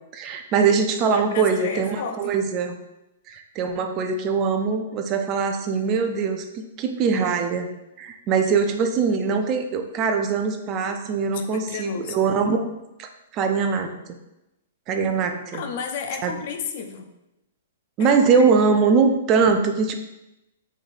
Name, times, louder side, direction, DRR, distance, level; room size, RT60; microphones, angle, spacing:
voice 1, 0.1-2.7 3.3-7.7 8.0-14.0 14.9-15.6 16.2-16.3 18.0-19.9, right 5 dB, 30° right, 6 dB, 0.4 m, -22 dB
voice 2, 1.0-2.4 11.3-12.2 15.5-17.1 18.0-18.4, left 6 dB, 50° left, 5 dB, 0.4 m, -33 dB
3.2 x 2.6 x 3.8 m, 0.92 s
hypercardioid pair, 145°, 0 cm